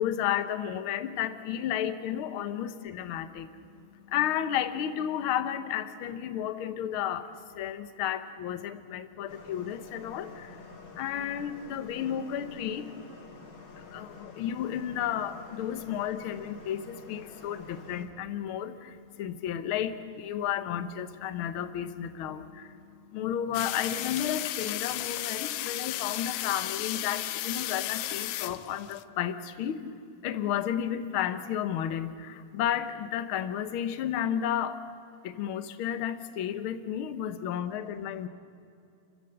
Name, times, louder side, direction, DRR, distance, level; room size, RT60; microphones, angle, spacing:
voice 1, 0.0-13.0 13.5-29.8 30.2-34.8 35.2-38.3, left 10 dB, 60° left, 11 dB, 1.5 m, -32 dB
sound 1, 9.3-18.1, left 3 dB, 45° left, 3.1 m, -49 dB
sound 2, 23.5-29.0, left 14 dB, 85° left, 1.3 m, -34 dB
29.5 x 14.5 x 7.9 m, 2.6 s
omnidirectional pair, 3.4 m